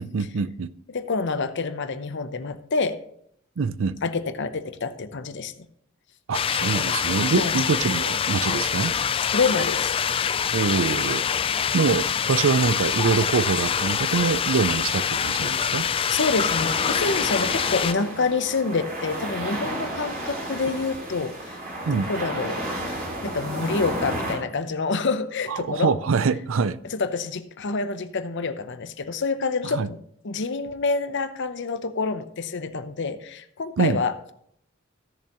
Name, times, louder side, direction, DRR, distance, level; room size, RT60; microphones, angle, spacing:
voice 1, 0.0-0.7 3.6-3.9 6.3-8.9 10.5-11.3 11.7-15.9 21.9-22.1 25.5-26.8 29.7-29.9 33.8-34.0, right 5 dB, 65° right, 0.5 m, -24 dB
voice 2, 0.9-3.0 4.0-5.7 7.4-7.6 9.3-9.9 15.8-21.6 21.9-25.9 26.9-30.0 30.2-34.2, left 4 dB, 60° left, 0.7 m, -27 dB
sound 1, 6.3-17.9, left 7 dB, 25° left, 0.3 m, -25 dB
sound 2, 16.3-24.4, right 1 dB, 45° right, 3.0 m, -32 dB
15.5 x 7.0 x 3.0 m
head